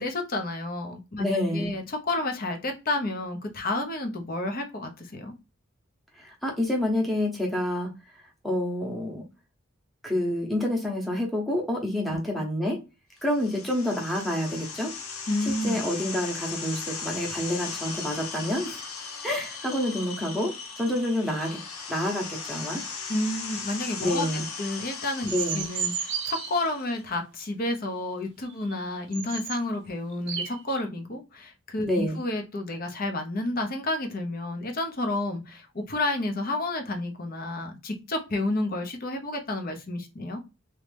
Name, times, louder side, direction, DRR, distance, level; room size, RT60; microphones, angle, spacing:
voice 1, 0.0-1.2 1.5-5.3 12.1-12.2 15.3-15.8 23.1-40.4, left 2 dB, 45° left, 0.7 m, -30 dB
voice 2, 1.2-1.7 6.2-7.9 8.4-9.2 10.0-12.8 13.2-14.9 15.4-18.8 19.2-21.6 21.9-22.8 24.0-24.5 25.3-25.7 31.9-32.2, left 1 dB, ahead, 1.0 m, -28 dB
sound 1, 13.2-27.0, left 5 dB, 85° left, 0.8 m, -38 dB
sound 2, 25.3-26.6 28.7-28.8 29.1-29.6 30.1-30.8, right 7 dB, 55° right, 0.6 m, -32 dB
3.1 x 2.8 x 3.3 m
head